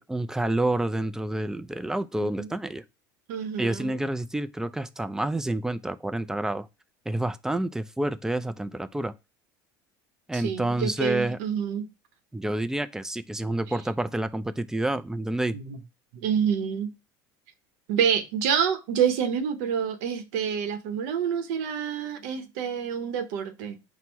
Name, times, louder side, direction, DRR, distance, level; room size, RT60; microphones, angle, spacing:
voice 1, 0.0-2.8 3.6-6.7 7.1-9.1 10.3-11.4 12.3-15.6, right 1 dB, 5° right, 0.3 m, -28 dB
voice 2, 2.2-2.5 3.3-4.0 10.3-11.9 15.5-15.8 16.1-16.9 17.9-23.8, right 7 dB, 80° right, 0.8 m, -27 dB
4.4 x 2.1 x 4.4 m
supercardioid pair, 105°, 10 cm